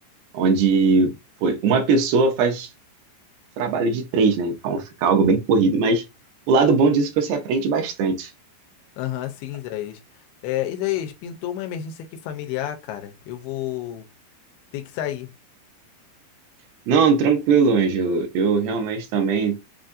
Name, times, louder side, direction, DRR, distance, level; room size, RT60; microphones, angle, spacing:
voice 1, 0.3-1.1 1.4-2.7 3.6-6.0 6.5-8.3 16.9-19.6, right 4 dB, 80° right, 2.8 m, -20 dB
voice 2, 9.0-10.0 10.4-14.1 14.7-15.3, left 12 dB, 85° left, 2.6 m, -30 dB
6.9 x 2.5 x 2.6 m
omnidirectional pair, 4.6 m